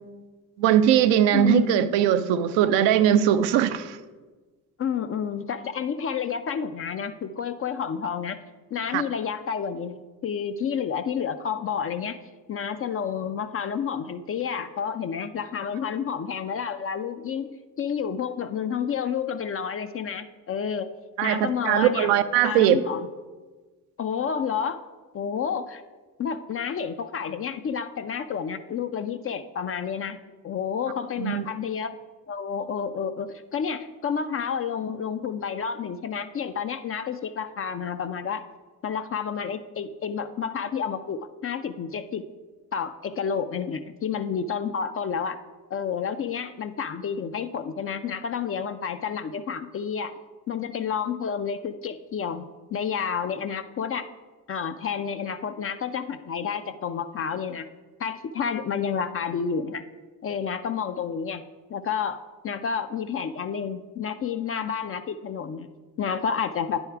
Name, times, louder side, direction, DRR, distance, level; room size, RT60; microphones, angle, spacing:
voice 1, 0.6-4.0 8.9-9.0 21.2-22.8 31.2-31.5, right 10 dB, 70° right, 11 dB, 0.5 m, -20 dB
voice 2, 1.3-1.9 4.8-8.4 8.7-12.2 12.5-17.5 17.8-20.9 21.2-22.1 22.4-23.1 24.0-24.8 25.1-25.8 26.2-30.2 30.4-31.9 32.3-38.4 38.8-42.2 42.7-45.4 45.7-50.1 50.5-52.5 52.7-54.0 54.5-57.7 58.0-59.8 60.2-61.4 61.7-62.2 62.4-65.7 66.0-66.8, left 7 dB, 30° left, 10 dB, 0.4 m, -30 dB
9.7 x 3.6 x 4.5 m, 1.3 s
hypercardioid pair, 55°, 47 cm